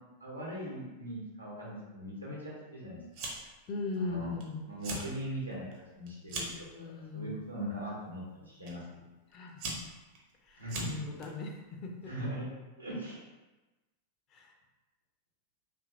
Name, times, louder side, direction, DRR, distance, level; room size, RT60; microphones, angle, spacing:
voice 1, 0.2-3.3 4.0-4.3 4.7-5.6 5.9-6.9 7.1-9.0 10.6-10.8 12.1-12.4 12.8-13.2, right 1 dB, 90° right, -5 dB, 0.9 m, -40 dB
Fire, 3.1-3.6 3.9-4.4 4.7-5.1 5.5-6.7 7.4-7.8 8.7-8.8 9.3-11.3, right 3 dB, 45° right, 0.6 m, -40 dB
voice 2, 3.7-4.6 6.3-7.4 9.3-9.8 10.4-12.1 14.3-14.5, left 3 dB, 35° left, 1 dB, 0.4 m, -39 dB
2.8 x 2.6 x 2.4 m, 1.1 s
figure-of-eight pair, 90°, 0 cm